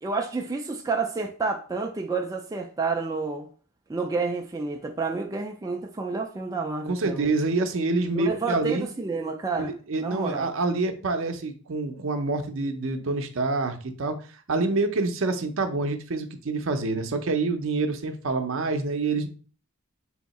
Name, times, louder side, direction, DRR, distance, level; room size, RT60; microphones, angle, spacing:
voice 1, 0.0-3.5 3.9-7.3 8.2-9.7 10.0-10.5, right 4 dB, 15° right, 0.3 m, -29 dB
voice 2, 6.9-8.9 9.6-14.2 14.5-19.3, right 3 dB, 65° right, 0.6 m, -27 dB
3.5 x 2.8 x 4.1 m
head